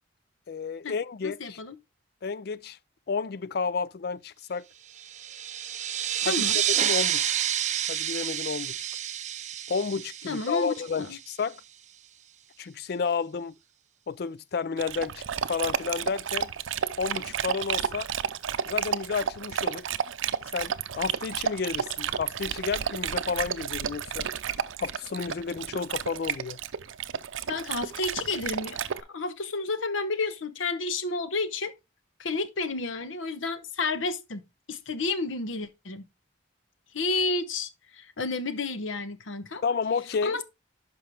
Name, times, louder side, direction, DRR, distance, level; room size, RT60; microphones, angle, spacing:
voice 1, 0.5-1.6 2.2-2.8 3.1-4.6 6.2-6.5 6.8-7.3 7.9-8.7 9.7-11.6 12.6-13.5 14.1-15.2 15.5-16.5 17.0-18.1 18.7-19.8 20.5-24.3 24.8-26.6 39.6-40.4, left 5 dB, 55° left, 0.4 m, -31 dB
voice 2, 1.2-1.8 6.2-6.6 10.3-11.2 27.5-28.8 29.1-31.7 32.2-34.4 34.7-36.0 36.9-39.6 40.2-40.4, left 3 dB, 90° left, 0.9 m, -31 dB
sound 1, 5.0-11.2, right 10 dB, 35° right, 0.5 m, -29 dB
Dog, 14.8-29.0, right 8 dB, 90° right, 0.5 m, -32 dB
11.0 x 5.2 x 3.4 m
head